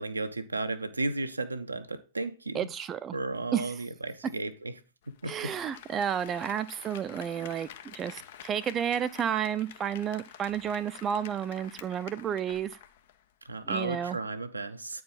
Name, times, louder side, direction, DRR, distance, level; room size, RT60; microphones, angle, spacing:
voice 1, 0.0-2.7 3.1-4.7 5.2-5.5 13.4-15.0, right 2 dB, 80° right, 0.7 m, -34 dB
voice 2, 2.5-3.2 3.5-3.7 5.3-12.8 13.6-14.2, right 8 dB, 25° right, 0.5 m, -31 dB
Applause, 5.0-13.2 13.5-13.6, left 9 dB, 55° left, 0.8 m, -49 dB
9.3 x 4.6 x 3.8 m
figure-of-eight pair, 90°, 0 cm